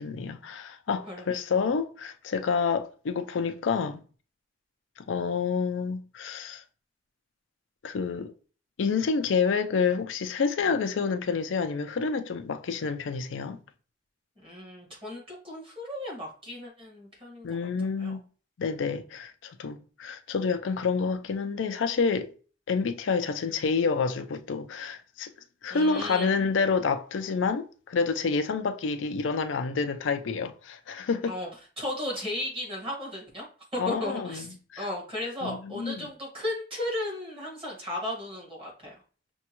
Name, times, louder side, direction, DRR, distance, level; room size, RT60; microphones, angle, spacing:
voice 1, 0.0-4.0 5.0-6.6 7.8-8.3 8.8-13.6 17.4-18.2 18.6-22.3 22.7-25.3 25.6-31.3 33.8-34.8 35.4-36.1, left 5 dB, 90° left, 0.4 m, -28 dB
voice 2, 14.4-17.5 18.0-18.2 25.7-26.4 31.3-31.5 31.8-33.5 33.7-34.5 34.8-38.9, left 1 dB, 30° right, 1.5 m, -35 dB
6.0 x 2.2 x 2.9 m
head